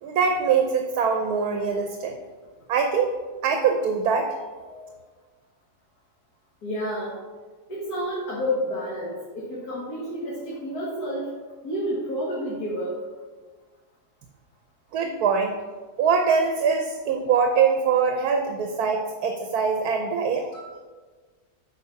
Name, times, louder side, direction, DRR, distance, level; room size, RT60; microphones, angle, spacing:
voice 1, 0.0-2.2 2.7-3.1 3.4-4.3 14.9-15.6 16.0-20.5, right 6 dB, 80° right, 4 dB, 1.3 m, -23 dB
voice 2, 6.6-7.2 7.7-11.3 11.6-13.0 20.5-20.6, equal, 75° left, -6 dB, 2.2 m, -30 dB
8.2 x 5.2 x 5.7 m, 1.4 s
omnidirectional pair, 1.6 m